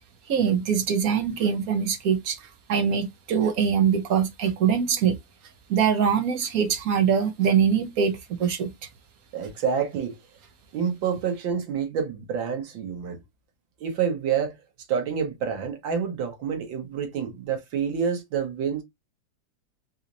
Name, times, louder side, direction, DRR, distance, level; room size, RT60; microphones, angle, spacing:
voice 1, 0.3-5.2 5.7-8.7, right 7 dB, 65° right, 1.0 m, -23 dB
voice 2, 9.3-10.2 10.7-13.2 13.8-14.6 14.9-18.8, right 7 dB, 85° right, 1.8 m, -28 dB
4.1 x 2.9 x 2.5 m
omnidirectional pair, 2.0 m